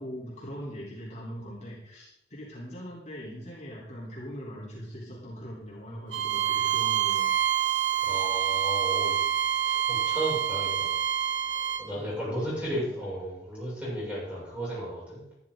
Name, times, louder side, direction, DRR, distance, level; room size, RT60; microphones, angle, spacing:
voice 1, 0.0-7.4 11.9-12.8, equal, 40° left, -5 dB, 3.9 m, -41 dB
Bowed string instrument, 6.1-11.9, right 10 dB, 85° right, 1.1 m, -27 dB
voice 2, 8.0-9.2 9.6-10.9 11.8-15.2, right 1 dB, 5° right, -8 dB, 6.7 m, -34 dB
13.5 x 13.0 x 3.9 m, 0.79 s
head